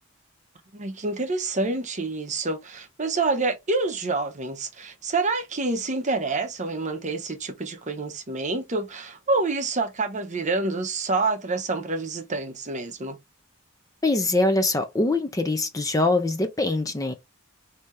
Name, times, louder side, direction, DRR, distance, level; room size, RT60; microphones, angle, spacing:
voice 1, 0.7-13.2, right 3 dB, 35° right, 0.8 m, -27 dB
voice 2, 14.0-17.1, left 2 dB, 15° left, 0.5 m, -23 dB
5.0 x 2.8 x 3.2 m
head